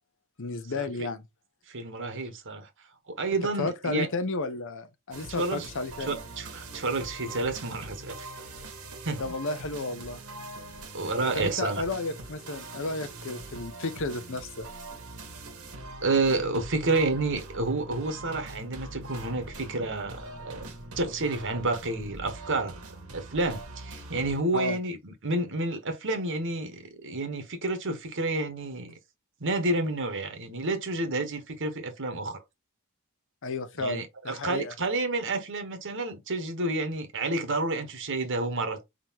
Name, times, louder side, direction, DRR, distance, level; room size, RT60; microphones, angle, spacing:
voice 1, 0.4-1.2 3.6-6.2 9.2-10.2 11.2-14.7 24.5-24.8 33.4-34.7, left 3 dB, 60° left, 0.8 m, -33 dB
voice 2, 1.7-2.7 3.1-4.1 5.4-5.7 6.1-8.3 9.0-9.2 10.9-11.8 16.0-22.8 23.1-29.0 29.4-32.4 33.8-38.8, right 2 dB, 60° right, 1.2 m, -30 dB
sound 1, 5.1-24.4, right 2 dB, 75° right, 1.5 m, -43 dB
4.7 x 3.8 x 2.9 m
head